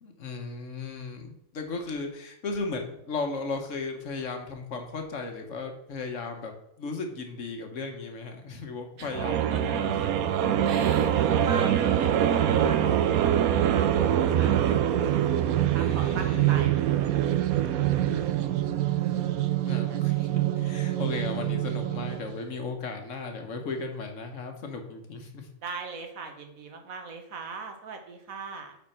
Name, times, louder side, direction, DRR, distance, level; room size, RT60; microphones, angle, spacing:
voice 1, 0.0-6.5 6.8-10.0 10.2-10.4 15.6-16.7 19.6-20.3 20.6-25.5, left 3 dB, 60° left, 5 dB, 1.4 m, -36 dB
sound 1, 9.1-22.3, right 10 dB, 90° right, 1.1 m, -24 dB
voice 2, 9.5-9.8 10.6-13.9 14.2-17.2 19.9-20.0 25.6-28.8, right 5 dB, 75° right, 5 dB, 1.5 m, -40 dB
8.8 x 4.4 x 4.3 m, 0.80 s
omnidirectional pair, 1.5 m